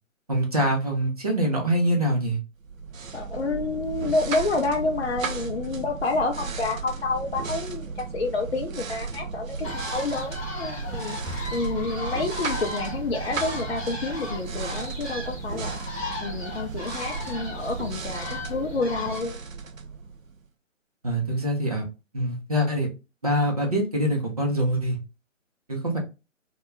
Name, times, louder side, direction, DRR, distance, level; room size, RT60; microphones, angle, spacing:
voice 1, 0.3-2.4 21.0-21.9 22.1-22.9 23.2-25.0 25.7-26.0, equal, 30° right, 0 dB, 0.5 m, -24 dB
sound 1, 2.6-20.5, right 5 dB, 90° right, 0.5 m, -34 dB
voice 2, 3.1-15.8 16.2-19.4, left 3 dB, 55° left, 2 dB, 0.5 m, -29 dB
sound 2, 9.6-19.2, left 2 dB, 10° left, 0.9 m, -36 dB
2.2 x 2.0 x 3.2 m, 0.28 s
figure-of-eight pair, 145°, 39 cm